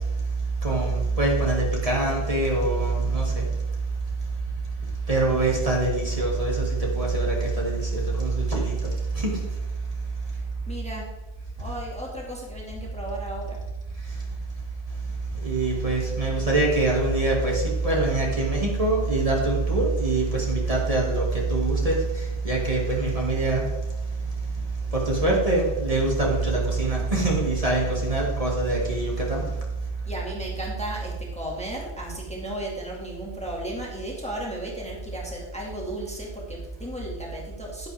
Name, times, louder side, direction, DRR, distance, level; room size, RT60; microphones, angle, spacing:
voice 1, 0.6-3.4 5.1-8.9 9.1-9.4 15.4-23.7 24.9-29.5, right 2 dB, 30° right, -3 dB, 2.4 m, -24 dB
voice 2, 10.3-11.1 11.6-13.6 30.0-37.9, right 1 dB, 5° left, -3 dB, 2.2 m, -34 dB
10.5 x 10.5 x 3.5 m, 1.1 s
omnidirectional pair, 1.2 m